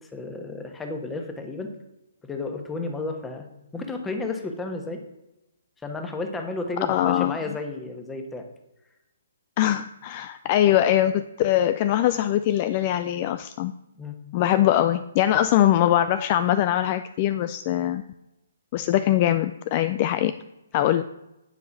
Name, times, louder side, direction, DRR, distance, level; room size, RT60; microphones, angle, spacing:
voice 1, 0.1-1.7 2.2-3.4 3.7-5.0 5.8-8.4 14.0-14.2 20.8-20.9, left 3 dB, 10° left, 5 dB, 1.2 m, -32 dB
voice 2, 6.9-7.4 9.6-13.7 14.3-18.0 18.7-20.3 20.7-21.0, left 12 dB, 35° left, 12 dB, 0.4 m, -22 dB
9.7 x 5.4 x 5.9 m, 0.93 s
figure-of-eight pair, 130°, 0 cm